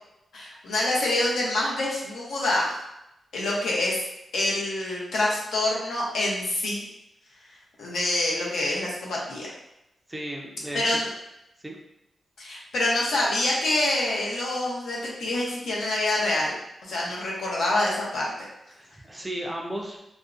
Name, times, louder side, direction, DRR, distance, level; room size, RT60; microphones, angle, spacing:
voice 1, 0.3-2.7 3.3-4.1 4.3-6.9 7.8-9.5 10.7-11.1 12.4-16.5 16.9-18.3, left 1 dB, 85° left, -4 dB, 0.7 m, -26 dB
voice 2, 10.1-10.8 11.6-11.8 18.7-20.0, right 1 dB, 10° right, -1 dB, 0.3 m, -35 dB
2.5 x 2.0 x 2.4 m, 0.85 s
wide cardioid pair, 140°, 0 cm